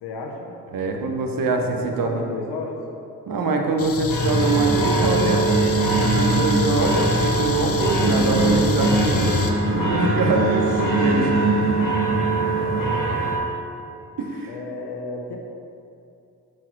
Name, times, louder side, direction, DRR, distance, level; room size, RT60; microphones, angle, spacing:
voice 1, 0.0-0.5 1.5-2.8 4.6-5.7 11.1-11.3 12.0-13.4 14.5-15.4, left 3 dB, 85° left, 2 dB, 0.9 m, -34 dB
voice 2, 0.7-2.2 3.3-5.4 6.0-11.2 14.2-14.6, right 3 dB, 65° right, 3 dB, 1.0 m, -24 dB
sound 1, 3.8-9.5, left 2 dB, 40° left, 0.8 m, -26 dB
sound 2, 4.1-13.4, right 2 dB, 65° left, 1.8 m, -24 dB
Singing, 4.4-12.9, right 3 dB, 85° right, 1.1 m, -24 dB
5.9 x 4.8 x 6.0 m, 2.6 s
supercardioid pair, 45°, 38 cm